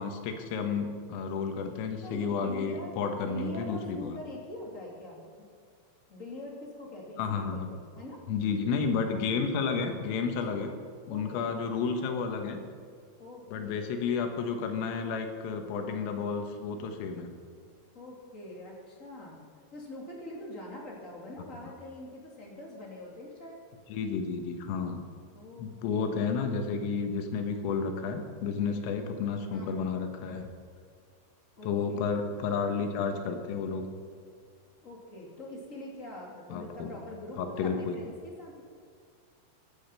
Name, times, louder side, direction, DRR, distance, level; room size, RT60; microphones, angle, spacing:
voice 1, 0.0-4.2 7.2-7.7 8.3-10.7 11.1-12.6 13.5-17.3 23.9-25.0 25.6-30.5 31.6-33.9 36.5-36.9 37.4-38.0, left 5 dB, 85° left, 5 dB, 4.0 m, -31 dB
voice 2, 2.0-5.5 6.1-8.2 9.0-9.1 10.6-10.7 11.1-11.5 13.2-13.9 17.9-19.4 19.7-23.6 25.3-26.2 28.7-28.8 29.5-30.0 31.6-31.7 34.8-38.6, left 1 dB, 25° left, -2 dB, 1.6 m, -44 dB
16.0 x 12.0 x 5.7 m, 2.2 s
omnidirectional pair, 5.8 m